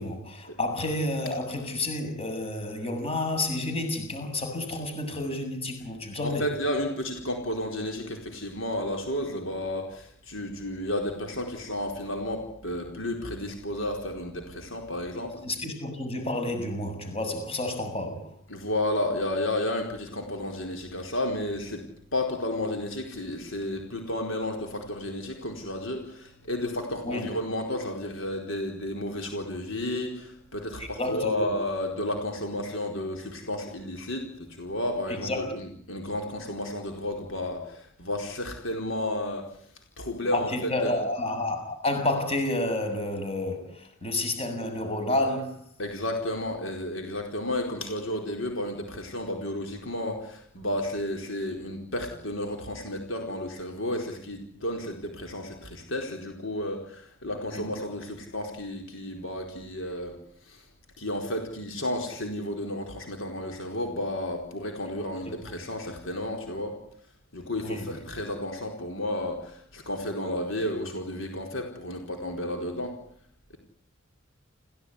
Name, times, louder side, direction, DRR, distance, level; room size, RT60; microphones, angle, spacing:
voice 1, 0.0-6.5 15.4-18.3 27.0-27.3 30.8-31.4 35.1-35.5 40.3-45.7 57.5-57.7 65.2-65.3 67.6-68.0, left 1 dB, 25° left, 6 dB, 7.4 m, -30 dB
voice 2, 6.2-15.4 18.5-21.9 22.1-39.5 40.0-40.9 45.8-60.2 60.4-60.6 61.0-66.8 67.3-73.0, left 1 dB, 60° left, 3 dB, 4.6 m, -32 dB
29.5 x 17.0 x 9.8 m, 0.64 s
head